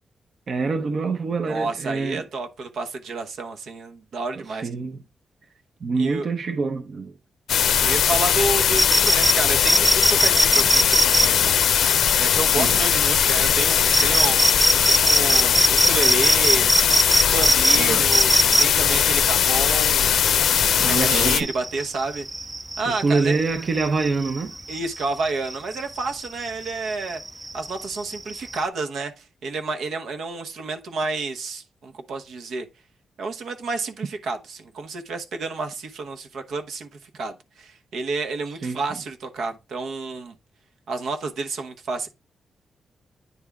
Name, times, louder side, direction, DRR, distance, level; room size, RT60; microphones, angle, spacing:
voice 1, 0.5-2.3 4.3-5.0 5.8-7.1 12.6-12.8 17.7-18.0 20.8-21.5 22.9-24.5 38.6-38.8, right 4 dB, 45° right, 0.7 m, -25 dB
voice 2, 1.4-4.7 6.0-6.3 7.8-11.5 12.2-14.4 14.9-16.7 17.3-18.3 18.6-20.1 20.8-22.3 22.8-23.4 24.7-27.2 27.5-32.7 33.2-40.3 40.9-42.1, right 3 dB, 80° right, 1.0 m, -30 dB
sound 1, 7.5-21.4, left 8 dB, 90° left, 0.5 m, -19 dB
sound 2, 8.8-28.7, right 2 dB, 15° right, 0.3 m, -24 dB
9.4 x 3.5 x 3.5 m
wide cardioid pair, 170°, 0 cm